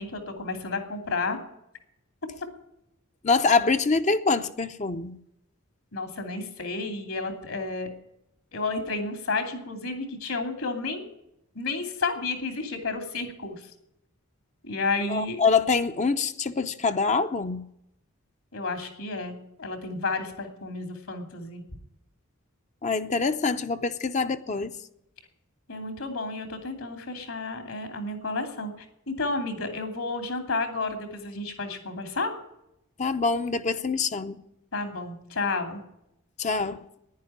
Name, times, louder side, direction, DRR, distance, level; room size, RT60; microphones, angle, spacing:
voice 1, 0.0-1.4 5.9-7.9 8.5-11.0 11.5-13.6 14.6-15.4 18.5-21.6 25.7-28.7 29.1-32.3 34.7-35.8, left 3 dB, 70° left, 2.8 m, -31 dB
voice 2, 3.2-5.2 15.1-17.6 22.8-24.8 33.0-34.4 36.4-36.8, left 4 dB, 35° left, 0.6 m, -25 dB
10.5 x 10.5 x 9.9 m
head